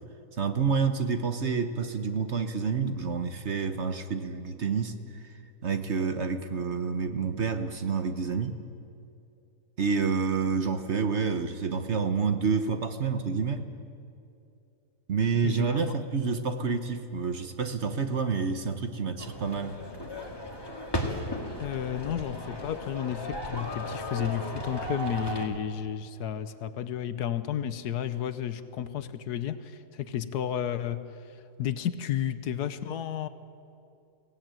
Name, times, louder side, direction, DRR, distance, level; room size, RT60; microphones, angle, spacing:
voice 1, 0.4-4.9 5.2-5.3 5.6-8.5 9.8-13.7 15.1-19.8, right 5 dB, 45° right, 8 dB, 1.2 m, -28 dB
voice 2, 15.4-15.8 21.6-33.3, left 10 dB, 75° left, 12 dB, 1.4 m, -32 dB
sound 1, 19.2-25.5, equal, 15° left, 1.9 m, -36 dB
23.0 x 17.0 x 9.0 m, 2.6 s
omnidirectional pair, 1.7 m